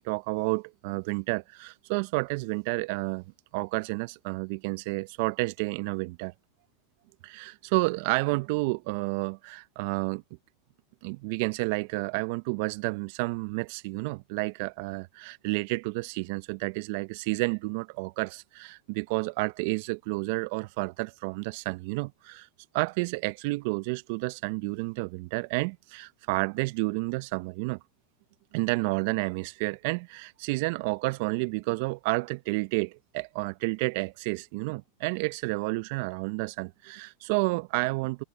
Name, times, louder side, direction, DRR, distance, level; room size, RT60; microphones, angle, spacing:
voice 1, 0.0-3.2 3.5-6.3 7.2-10.2 11.0-22.5 22.7-27.8 28.5-38.2, right 26 dB, 60° right, 0.5 m, -30 dB
hypercardioid pair, 100°, 0 cm